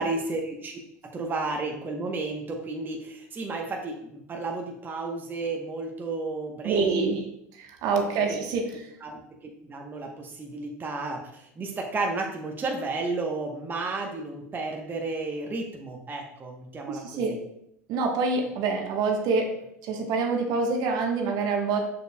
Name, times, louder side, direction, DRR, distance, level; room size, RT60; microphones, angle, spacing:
voice 1, 0.0-7.2 8.0-8.4 9.0-17.4, right 3 dB, 25° right, 1 dB, 1.0 m, -33 dB
voice 2, 6.6-7.2 7.6-8.9 16.9-17.4 17.9-19.5 19.8-21.8, right 4 dB, 50° right, 3 dB, 1.2 m, -26 dB
6.7 x 6.6 x 2.3 m, 0.76 s
figure-of-eight pair, 75°, 9 cm